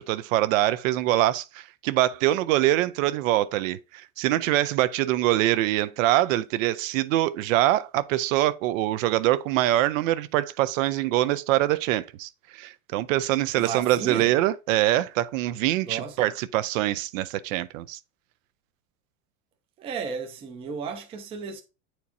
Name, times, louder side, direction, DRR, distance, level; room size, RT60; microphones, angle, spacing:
voice 1, 0.0-18.0, right 14 dB, 70° right, 0.6 m, -24 dB
voice 2, 13.5-14.3 15.8-16.2 19.8-21.6, right 6 dB, 15° right, 0.4 m, -34 dB
8.4 x 4.4 x 2.6 m
supercardioid pair, 170°, 41 cm